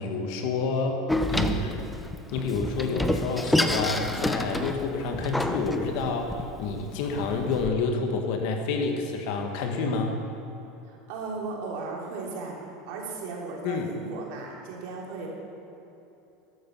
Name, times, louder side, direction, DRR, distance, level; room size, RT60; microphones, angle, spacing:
voice 1, 0.0-1.9 2.3-10.2 13.6-13.9, left 4 dB, 65° left, 4 dB, 1.9 m, -29 dB
Door, 1.1-7.7, left 1 dB, 5° left, 0.8 m, -29 dB
voice 2, 10.9-15.3, right 4 dB, 70° right, -2 dB, 3.4 m, -36 dB
13.0 x 12.5 x 5.7 m, 3.0 s
hypercardioid pair, 100°, 0 cm